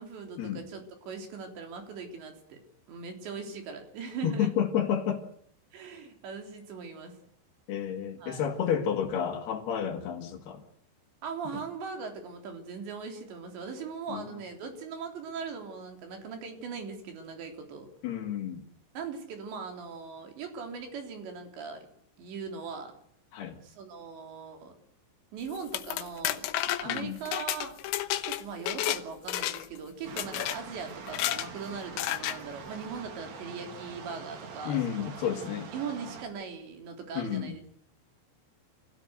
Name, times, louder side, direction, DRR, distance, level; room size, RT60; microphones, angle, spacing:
voice 1, 0.0-2.6 2.9-4.5 5.7-7.2 8.2-8.4 11.2-17.9 19.0-21.9 22.2-22.9 23.6-24.7 25.3-27.7 28.2-35.1 35.7-37.7, right 5 dB, 75° right, 5.7 m, -40 dB
voice 2, 4.2-5.3 7.7-10.6 11.5-11.6 14.1-14.3 18.0-18.7 23.3-23.6 26.9-27.2 34.7-35.7 37.2-37.6, left 9 dB, 65° left, 3.7 m, -31 dB
sound 1, 25.5-29.0 29.3-29.8 30.2-30.6 31.1-31.5 32.0-32.4, left 13 dB, 85° left, 3.4 m, -31 dB
sound 2, 30.0-36.3, right 6 dB, 45° right, 3.0 m, -44 dB
27.5 x 16.5 x 8.0 m
omnidirectional pair, 5.2 m